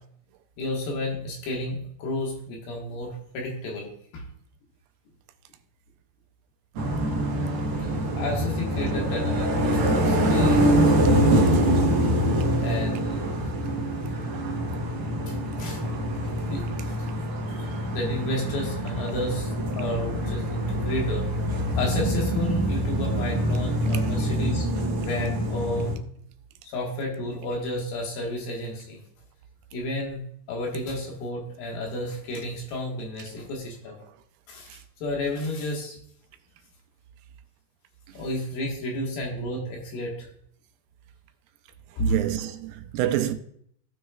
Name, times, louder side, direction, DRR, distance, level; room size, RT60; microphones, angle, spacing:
voice 1, 0.6-4.2 7.8-10.6 12.6-13.3 15.3-15.8 16.5-17.0 17.4-21.3 21.8-24.7 24.9-25.9 26.6-29.0 29.7-34.0 34.5-34.7 35.0-36.0 38.1-40.3 42.0-42.2, left 1 dB, 80° left, 3.3 m, -31 dB
sound 1, 6.8-26.0, right 1 dB, 60° right, 1.5 m, -25 dB
voice 2, 42.0-43.3, right 12 dB, 85° right, 2.3 m, -27 dB
15.5 x 6.2 x 2.4 m
omnidirectional pair, 4.1 m